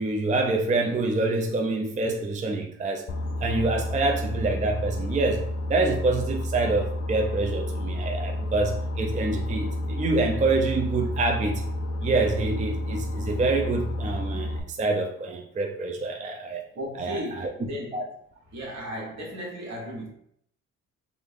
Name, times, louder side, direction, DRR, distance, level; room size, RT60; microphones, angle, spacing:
voice 1, 0.0-3.0 3.4-11.6 12.0-16.6 17.0-17.5 17.9-18.1, right 3 dB, 25° right, 2 dB, 0.4 m, -26 dB
Boat Water vehicle, 3.1-14.6, left 1 dB, 50° left, 0.5 m, -30 dB
voice 2, 16.7-18.1 18.5-20.1, equal, 65° right, -2 dB, 1.5 m, -35 dB
3.4 x 2.4 x 3.5 m, 0.69 s
cardioid pair, 90°, 30 cm